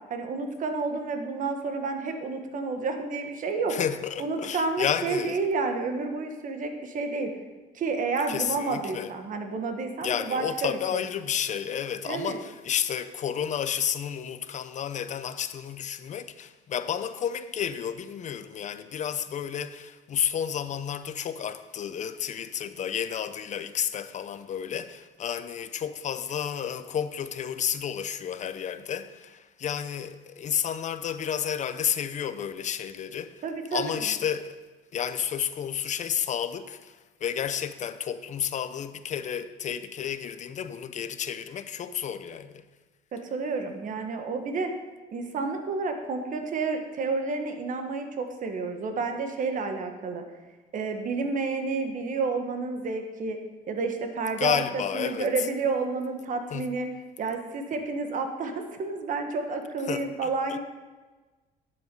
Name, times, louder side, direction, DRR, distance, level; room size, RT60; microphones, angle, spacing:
voice 1, 0.1-3.8 4.2-7.3 7.7-11.0 12.0-12.4 33.4-33.9 43.1-44.7 45.1-50.2 50.7-53.4 53.7-56.9 57.2-60.6, right 4 dB, 50° right, 1.4 m, -30 dB
voice 2, 3.7-5.4 8.3-9.1 10.0-33.4 33.7-34.6 34.9-42.6 54.4-55.5 56.5-56.7 59.9-60.6, left 9 dB, 45° left, 0.7 m, -31 dB
10.5 x 7.5 x 5.3 m
cardioid pair, 110°, 17 cm